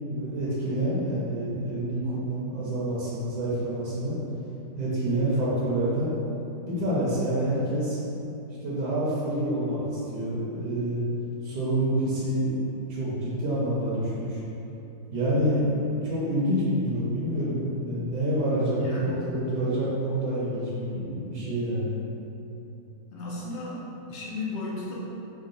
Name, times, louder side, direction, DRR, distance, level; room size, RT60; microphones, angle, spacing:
voice 1, 0.0-4.1 4.8-6.1 6.6-8.0 8.6-11.0 11.4-14.4 15.1-21.9, right 1 dB, 65° right, -8 dB, 1.1 m, -27 dB
voice 2, 18.7-19.3 23.1-25.0, left 2 dB, 80° left, -5 dB, 0.6 m, -35 dB
3.7 x 2.2 x 3.7 m, 2.9 s
omnidirectional pair, 1.9 m